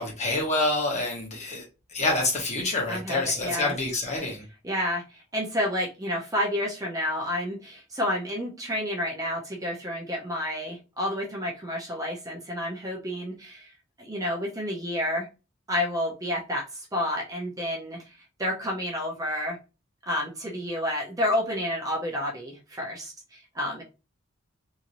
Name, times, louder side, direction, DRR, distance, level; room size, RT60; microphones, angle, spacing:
voice 1, 0.0-1.6 1.9-4.4, left 2 dB, 35° left, 1.1 m, -27 dB
voice 2, 2.9-3.7 4.6-13.7 14.0-15.3 15.7-19.6 20.1-23.8, left 1 dB, 15° right, 0.7 m, -30 dB
2.9 x 2.7 x 2.6 m
head